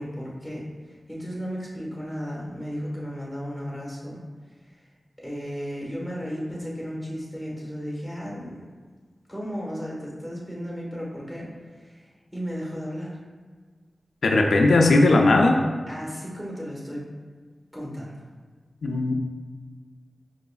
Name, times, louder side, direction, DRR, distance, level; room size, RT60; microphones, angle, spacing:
voice 1, 0.0-4.2 5.2-8.5 9.3-12.0 12.3-13.2 15.9-17.1 17.7-18.2, equal, 5° right, -5 dB, 1.2 m, -34 dB
voice 2, 14.2-15.6 18.8-19.1, left 2 dB, 90° left, 2 dB, 0.3 m, -18 dB
4.8 x 2.9 x 2.3 m, 1.5 s
wide cardioid pair, 80°, 0 cm